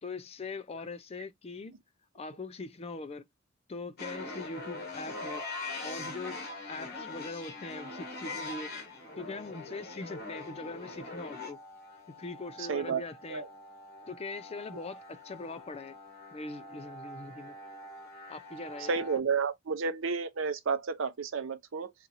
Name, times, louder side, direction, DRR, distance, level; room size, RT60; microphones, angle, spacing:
voice 1, 0.0-1.7 2.1-3.3 3.7-5.4 5.8-6.4 6.7-8.7 9.2-11.6 12.2-13.4 14.1-16.0 16.3-17.5 18.3-18.9, left 3 dB, 30° left, 0.4 m, -41 dB
sound 1, 4.0-19.2, left 2 dB, 55° left, 1.3 m, -43 dB
voice 2, 12.6-13.0 13.3-13.5 18.8-21.9, right 5 dB, 80° right, 0.6 m, -31 dB
4.3 x 2.5 x 2.6 m
head